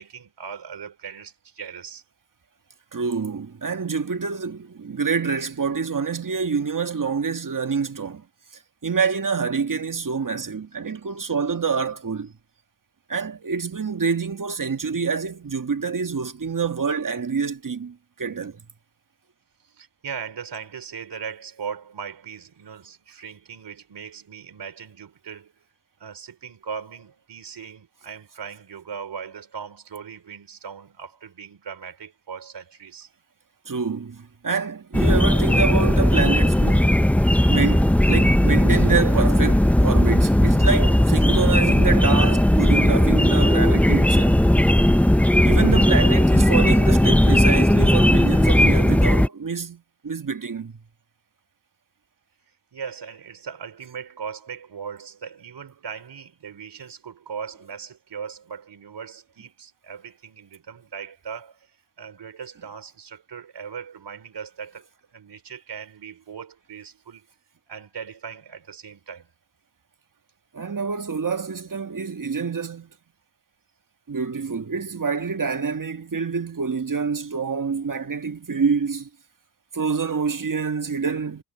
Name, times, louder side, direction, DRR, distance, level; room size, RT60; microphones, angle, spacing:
voice 1, 0.0-2.0 19.6-25.5 26.0-33.1 52.7-61.7 62.0-67.3 67.7-69.3, right 7 dB, 80° right, 3.9 m, -38 dB
voice 2, 2.9-8.2 8.8-12.3 13.1-18.6 33.7-36.9 37.5-44.4 45.4-50.8 70.5-72.9 74.1-79.1 79.7-81.4, right 5 dB, 50° right, 1.9 m, -26 dB
sound 1, 34.9-49.3, left 1 dB, 5° left, 0.8 m, -17 dB
cardioid pair, 40°, 41 cm